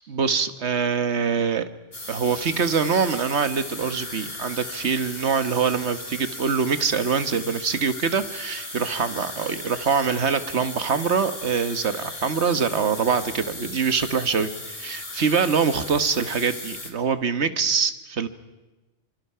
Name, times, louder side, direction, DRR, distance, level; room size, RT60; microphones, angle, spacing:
voice 1, 0.1-1.6 2.1-18.3, right 6 dB, 65° right, 11 dB, 1.6 m, -24 dB
sound 1, 1.9-16.9, left 2 dB, 55° left, 3.7 m, -37 dB
26.5 x 26.0 x 5.7 m, 1.1 s
omnidirectional pair, 1.2 m